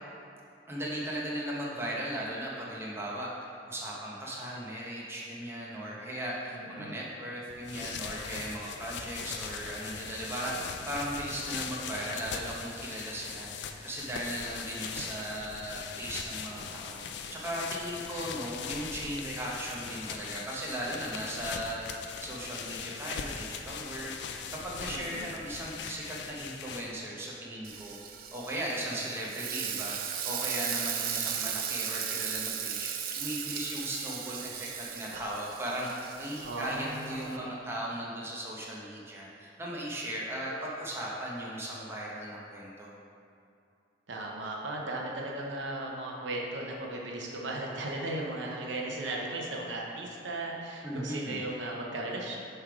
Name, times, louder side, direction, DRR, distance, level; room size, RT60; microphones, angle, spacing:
voice 1, 0.7-3.3 3.7-28.0 28.3-32.9 33.1-42.9 50.8-51.4, right 1 dB, 15° right, -5 dB, 0.9 m, -37 dB
voice 2, 6.5-7.0 24.9-25.3 36.4-37.5 44.1-52.4, right 2 dB, 75° right, -1 dB, 0.8 m, -36 dB
sound 1, 7.5-27.1, left 6 dB, 65° left, 0.4 m, -40 dB
Frying (food), 27.6-37.4, right 8 dB, 50° right, 0.4 m, -36 dB
7.2 x 3.4 x 4.7 m, 2.5 s
head